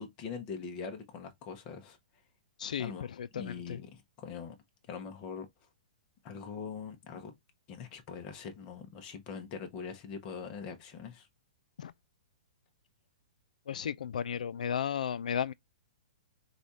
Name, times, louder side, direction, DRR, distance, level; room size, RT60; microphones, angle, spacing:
voice 1, 0.0-2.0 2.8-3.1 3.3-4.5 4.9-5.5 6.2-7.3 7.7-11.3, left 6 dB, 20° left, 0.7 m, -42 dB
voice 2, 2.6-2.9 3.2-3.8 11.8-11.9 13.7-15.5, left 8 dB, 70° left, 0.4 m, -34 dB
5.0 x 2.4 x 4.0 m
hypercardioid pair, 180°, 4 cm